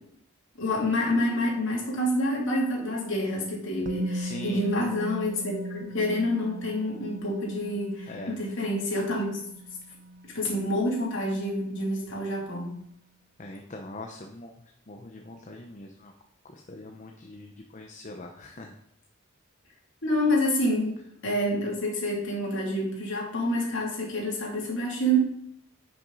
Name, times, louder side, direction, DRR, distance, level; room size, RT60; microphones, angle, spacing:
voice 1, 0.6-9.4 10.3-12.7 20.0-20.9 21.2-25.2, equal, 65° left, -2 dB, 2.9 m, -28 dB
Musical instrument, 3.9-11.8 12.0-12.2, right 1 dB, 40° right, 0.4 m, -39 dB
voice 2, 4.1-4.6 8.1-8.3 13.4-14.5 14.9-16.1 16.5-18.7, left 1 dB, 40° left, 2 dB, 0.8 m, -42 dB
10.5 x 6.1 x 4.0 m, 0.70 s
head